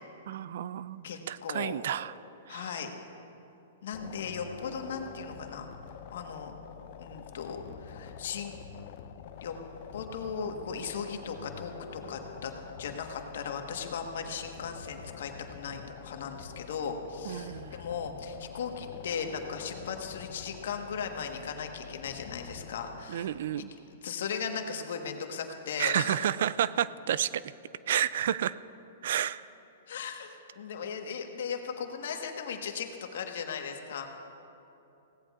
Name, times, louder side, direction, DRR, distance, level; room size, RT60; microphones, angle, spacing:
voice 1, 0.3-2.1 2.5-2.6 17.3-17.7 23.1-23.7 25.8-27.4 27.9-28.5 29.0-29.4, right 10 dB, 65° right, 17 dB, 0.3 m, -30 dB
voice 2, 1.0-1.8 2.5-2.9 3.8-5.7 6.1-6.6 7.0-8.5 9.4-9.6 9.9-12.5 12.8-23.3 23.5-26.3 29.9-34.1, left 6 dB, 70° left, 4 dB, 1.3 m, -37 dB
sound 1, 3.9-23.1, left 8 dB, 55° left, 0.6 m, -46 dB
21.0 x 17.0 x 2.4 m, 2.9 s
hypercardioid pair, 130°, 0 cm